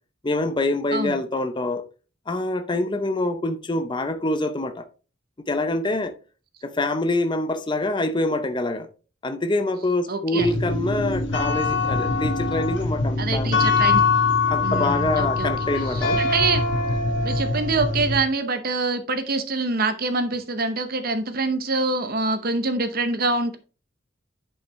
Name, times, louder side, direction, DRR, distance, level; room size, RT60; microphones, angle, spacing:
voice 1, 0.2-1.8 2.3-4.9 5.5-6.1 6.6-8.9 9.2-13.5 14.5-16.2, left 2 dB, 25° left, 0.6 m, -25 dB
voice 2, 10.1-10.5 13.2-14.0 14.6-15.5 15.8-16.6 17.2-23.6, right 3 dB, 50° right, 0.8 m, -25 dB
sound 1, 10.4-18.2, left 3 dB, 65° left, 1.4 m, -23 dB
10.5 x 5.5 x 3.1 m
head